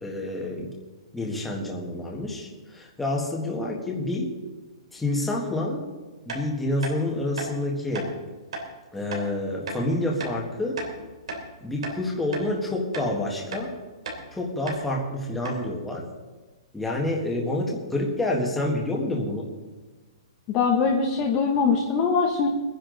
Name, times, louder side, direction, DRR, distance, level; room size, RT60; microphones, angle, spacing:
voice 1, 0.0-0.8 1.1-4.4 4.9-5.8 6.2-8.2 8.9-10.8 11.6-13.7 14.3-16.0 16.7-19.5, left 1 dB, 5° left, -2 dB, 1.6 m, -28 dB
sound 1, 6.3-6.4 6.8-7.0 7.3-7.5 7.9-8.1 8.5-8.7 9.1-9.2 9.7-9.8 10.2-10.4 10.8-11.5 11.8-12.0 12.3-12.5 12.9-13.1 13.5-13.7 14.0-14.2 14.7-14.8 15.1-15.2 15.4-15.6, right 2 dB, 70° right, 3.4 m, -34 dB
voice 2, 20.5-22.5, left 5 dB, 20° left, 0 dB, 1.0 m, -22 dB
22.5 x 10.0 x 3.9 m, 1.2 s
hypercardioid pair, 180°, 3 cm